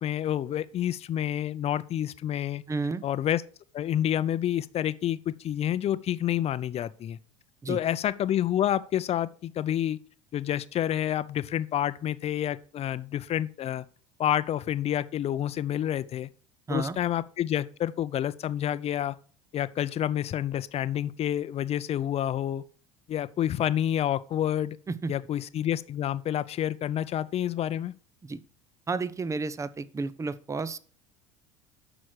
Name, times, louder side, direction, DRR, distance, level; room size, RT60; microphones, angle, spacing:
voice 1, 0.0-2.6 3.0-3.4 3.7-7.2 7.7-10.0 10.3-13.8 14.2-16.3 16.7-19.1 19.5-22.6 23.1-24.8 25.1-27.9, left 11 dB, 40° left, 0.7 m, -28 dB
voice 2, 2.7-3.0 7.6-7.8 16.7-17.0 24.9-25.1 28.2-28.4 28.9-30.8, right 4 dB, 20° right, 0.7 m, -31 dB
9.6 x 6.2 x 6.4 m
hypercardioid pair, 70°, 17 cm